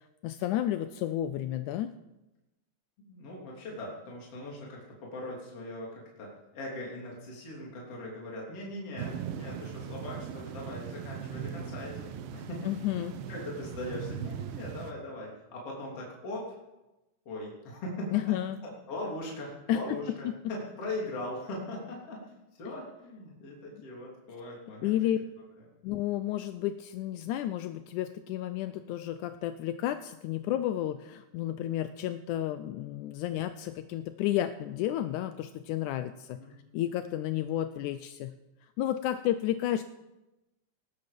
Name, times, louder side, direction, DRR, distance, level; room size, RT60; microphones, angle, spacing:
voice 1, 0.0-1.9 12.7-13.1 18.1-18.6 19.7-19.8 24.8-25.2 25.8-36.4 36.7-38.3 38.8-39.8, left 12 dB, 80° left, 9 dB, 1.8 m, -31 dB
voice 2, 3.1-12.6 13.3-16.4 17.3-18.1 18.4-18.5 18.9-25.0 36.4-36.5, left 1 dB, 40° left, -3 dB, 4.1 m, -40 dB
sound 1, 9.0-14.9, right 8 dB, 80° right, 2.8 m, -39 dB
19.5 x 12.5 x 5.3 m, 0.99 s
omnidirectional pair, 4.1 m